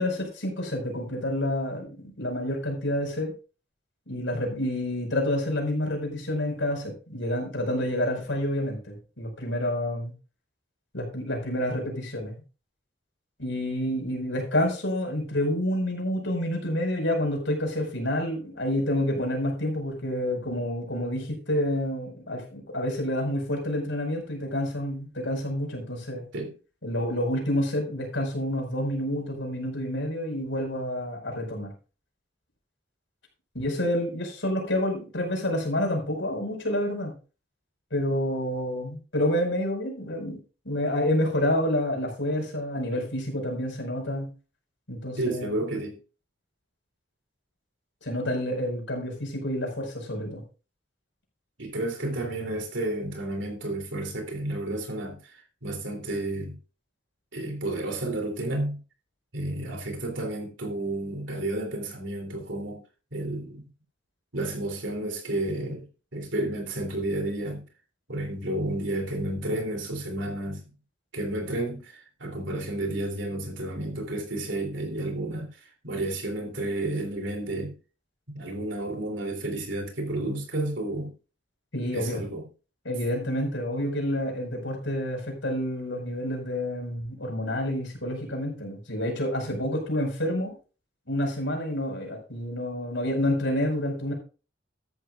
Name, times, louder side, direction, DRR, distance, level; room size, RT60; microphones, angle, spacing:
voice 1, 0.0-3.3 4.1-10.1 10.9-12.4 13.4-26.2 26.8-31.7 33.5-37.1 37.9-40.4 40.6-44.3 44.9-45.6 48.0-50.4 81.7-82.2 82.8-90.5 91.1-94.1, left 1 dB, 85° left, 5.1 m, -28 dB
voice 2, 45.2-46.0 51.6-56.6 57.3-58.8 59.3-62.8 63.1-63.7 64.3-65.8 66.1-67.6 68.1-70.6 71.1-77.8 78.3-81.1 81.9-82.4, right 1 dB, 80° right, 3.1 m, -31 dB
13.5 x 11.5 x 2.4 m
head